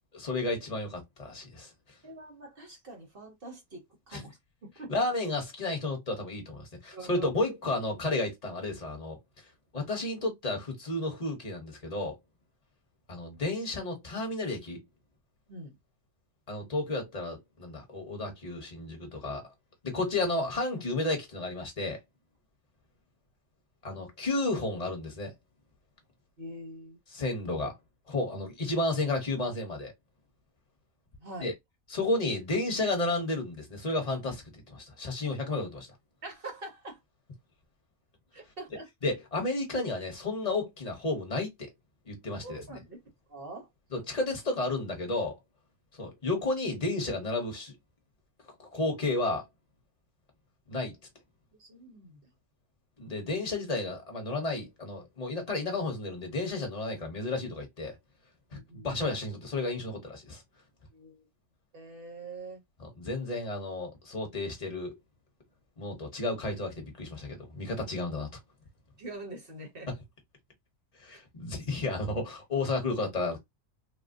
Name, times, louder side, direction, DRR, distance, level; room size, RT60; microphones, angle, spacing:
voice 1, 0.1-1.7 4.1-4.2 4.9-9.2 9.7-12.2 13.1-14.8 16.5-19.4 19.8-22.0 23.8-25.3 27.1-27.8 28.1-29.9 31.4-31.5 31.9-35.9 39.0-41.7 42.0-42.7 43.9-45.4 45.9-47.7 48.6-49.4 50.7-51.0 53.0-57.9 58.5-58.6 58.8-60.4 62.8-64.9 65.8-68.3 69.9-70.0 71.0-73.4, left 2 dB, 30° left, 1.1 m, -32 dB
voice 2, 2.0-4.9 6.9-7.3 15.5-15.8 26.4-27.0 31.2-31.5 36.2-37.0 38.3-38.9 42.4-43.0 43.3-43.7 51.6-52.3 58.5-58.9 60.9-61.3 61.7-62.6 69.0-69.9 71.1-71.2, right 2 dB, 45° right, 1.2 m, -44 dB
3.6 x 2.1 x 2.5 m
omnidirectional pair, 1.5 m